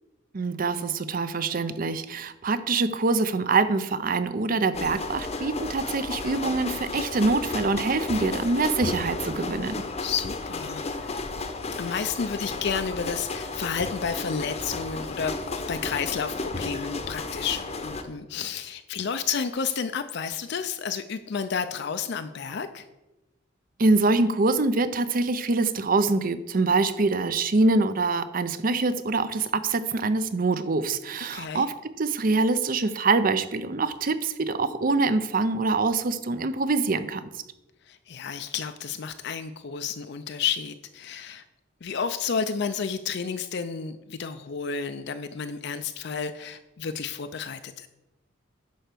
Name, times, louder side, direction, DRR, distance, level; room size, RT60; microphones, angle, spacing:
voice 1, 0.3-9.7 23.8-37.3, right 3 dB, 45° right, 13 dB, 0.6 m, -24 dB
sound 1, 4.7-18.0, left 3 dB, 30° left, 0.8 m, -33 dB
voice 2, 10.0-11.2 11.8-22.9 31.3-31.6 37.9-41.4 41.8-47.9, left 6 dB, 55° left, 9 dB, 0.5 m, -31 dB
10.5 x 4.5 x 6.7 m, 0.99 s
head